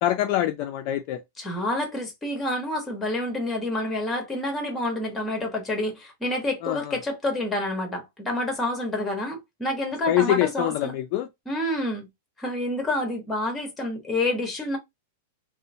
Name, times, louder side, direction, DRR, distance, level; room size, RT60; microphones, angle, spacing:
voice 1, 0.0-1.2 6.6-7.0 10.1-11.3, left 13 dB, 45° left, 0.3 m, -25 dB
voice 2, 1.4-10.9 11.5-12.1 12.4-14.8, left 1 dB, 10° left, 1.0 m, -28 dB
2.8 x 2.0 x 2.6 m
supercardioid pair, 145°, 0 cm